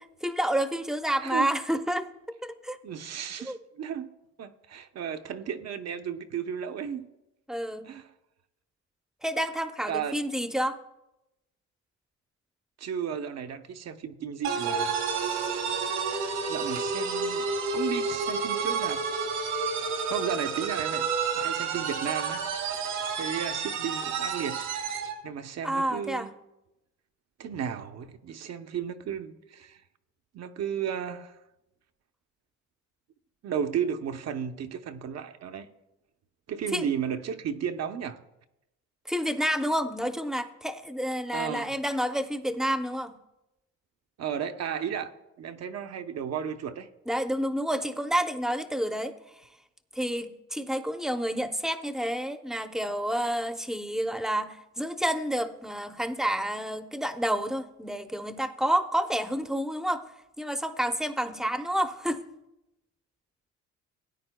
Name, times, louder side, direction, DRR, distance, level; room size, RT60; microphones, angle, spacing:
voice 1, 0.2-2.1 2.4-2.8 3.4-3.6 7.5-7.9 9.2-10.8 25.6-26.3 36.7-36.9 39.1-43.2 47.1-49.1 49.9-60.0 60.4-62.2, equal, ahead, 0.7 m, -29 dB
voice 2, 2.8-4.1 4.4-7.0 7.8-8.1 9.9-10.2 12.8-15.0 16.4-17.5 17.7-19.1 20.1-21.1 21.4-22.4 23.2-24.6 25.2-26.3 27.4-29.8 30.3-31.4 33.4-35.7 36.5-38.2 41.3-41.8 44.2-45.1 45.4-46.9, right 8 dB, 60° right, 0.7 m, -34 dB
sound 1, 14.4-25.2, right 5 dB, 85° right, 1.5 m, -30 dB
18.0 x 9.4 x 2.2 m
cardioid pair, 90°, 30 cm